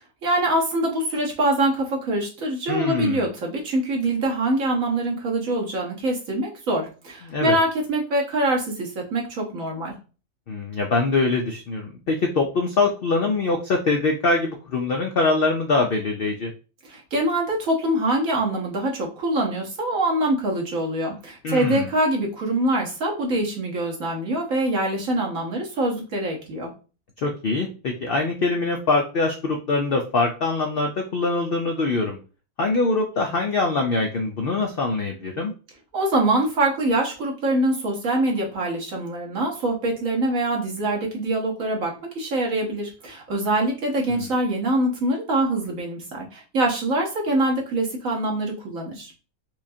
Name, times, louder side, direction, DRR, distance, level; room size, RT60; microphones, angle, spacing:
voice 1, 0.2-9.9 16.9-26.7 35.9-49.1, right 1 dB, 65° right, -1 dB, 1.4 m, -24 dB
voice 2, 2.7-3.3 7.2-7.6 10.5-16.5 21.4-21.9 27.2-32.2 32.6-35.5 44.1-44.3, left 3 dB, 80° left, 2 dB, 0.5 m, -23 dB
4.5 x 2.4 x 2.6 m, 0.35 s
omnidirectional pair, 1.6 m